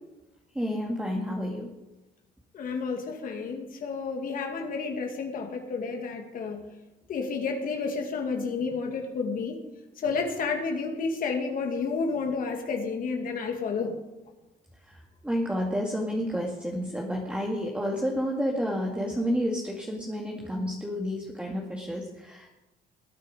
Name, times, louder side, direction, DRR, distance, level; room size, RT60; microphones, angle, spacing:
voice 1, 0.5-1.7 14.9-22.5, equal, 5° right, -1 dB, 2.2 m, -30 dB
voice 2, 2.5-6.6 7.1-9.6 10.0-13.9, left 4 dB, 55° left, 3 dB, 2.6 m, -31 dB
19.5 x 9.3 x 5.3 m, 1.0 s
cardioid pair, 110°, 17 cm